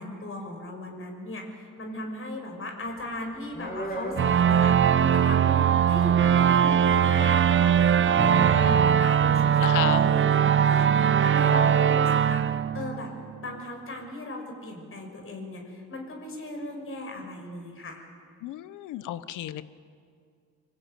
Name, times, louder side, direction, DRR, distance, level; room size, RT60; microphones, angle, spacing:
voice 1, 0.0-13.1 13.4-18.0, left 2 dB, 45° left, 3 dB, 6.1 m, -37 dB
sound 1, 2.9-5.4 5.7-8.1, equal, 30° left, 7.6 m, -40 dB
sound 2, 4.2-13.5, right 8 dB, 40° right, 0.7 m, -21 dB
voice 2, 8.2-8.8 9.6-10.0 11.4-11.7 18.4-19.6, left 13 dB, 90° left, 15 dB, 1.0 m, -34 dB
25.0 x 21.5 x 9.2 m, 2.2 s
cardioid pair, 90°, 30 cm